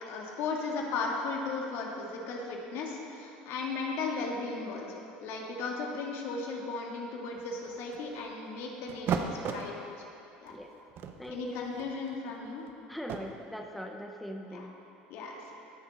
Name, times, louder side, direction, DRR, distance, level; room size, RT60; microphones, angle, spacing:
voice 1, 0.1-10.1 10.4-10.6 11.3-12.7 14.5-14.7 15.1-15.5, left 3 dB, 65° left, 0 dB, 1.9 m, -36 dB
sound 1, 7.4-8.2 8.9-9.7 10.4-10.6 10.9-13.2, right 6 dB, 50° right, 0.8 m, -36 dB
voice 2, 11.2-11.7 12.9-14.7, equal, ahead, 2 dB, 0.9 m, -41 dB
17.5 x 6.8 x 4.0 m, 2.7 s
hypercardioid pair, 80°, 5 cm